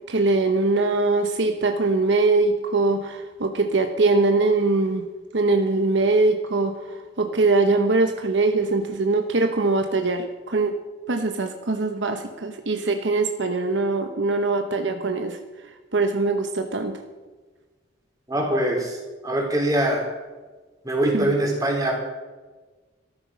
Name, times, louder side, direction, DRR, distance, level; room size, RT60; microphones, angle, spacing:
voice 1, 0.0-5.1 5.3-10.8 11.1-15.4 15.9-17.0 21.1-21.3, right 3 dB, 65° right, 6 dB, 0.9 m, -22 dB
voice 2, 18.3-19.0 19.2-20.0 20.8-21.9, right 1 dB, 20° right, 0 dB, 3.4 m, -23 dB
14.0 x 12.0 x 6.1 m, 1.3 s
head